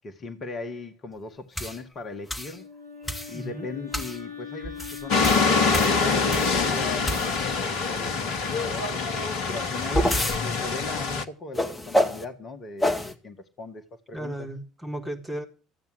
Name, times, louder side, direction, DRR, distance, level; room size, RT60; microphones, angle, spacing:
voice 1, 0.0-2.7 3.3-9.1 9.5-14.3, left 3 dB, 35° left, 1.8 m, -38 dB
sound 1, 1.6-1.8 2.3-2.6 3.1-3.4 3.9-4.2 4.6-6.6 7.0-7.6 9.5-10.4 11.6-12.2 12.8-13.1, equal, 10° left, 2.4 m, -27 dB
Wind instrument woodwind instrument, 2.3-6.9, left 6 dB, 85° right, 4.5 m, -41 dB
voice 2, 3.3-3.7 14.1-15.4, right 1 dB, 15° right, 4.5 m, -35 dB
sound 2, 5.1-11.2, left 4 dB, 60° left, 1.3 m, -25 dB
14.5 x 9.1 x 8.1 m
figure-of-eight pair, 55°, 0 cm